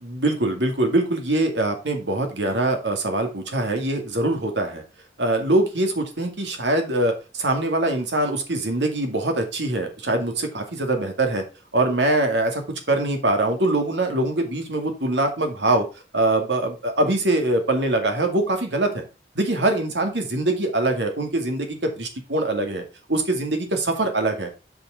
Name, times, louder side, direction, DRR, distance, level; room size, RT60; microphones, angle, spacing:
voice 1, 0.0-4.8 5.2-11.4 11.7-15.9 16.1-19.0 19.3-22.8 23.1-24.6, right 2 dB, 80° right, 5 dB, 2.3 m, -23 dB
8.1 x 5.3 x 4.9 m, 0.29 s
head